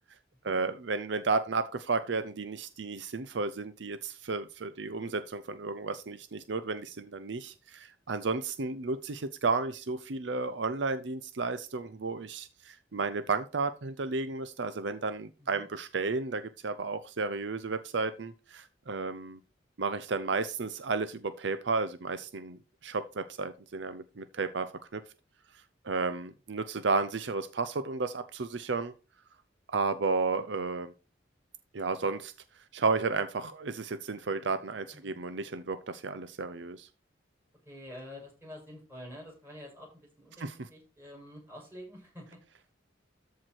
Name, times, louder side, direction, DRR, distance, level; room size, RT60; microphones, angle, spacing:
voice 1, 0.4-19.4 19.8-25.0 25.8-28.9 29.7-30.9 31.7-32.3 32.7-36.9 40.4-40.5, right 4 dB, 70° right, 0.6 m, -33 dB
voice 2, 37.6-42.8, left 1 dB, 15° right, 6.8 m, -48 dB
13.5 x 4.7 x 4.7 m
head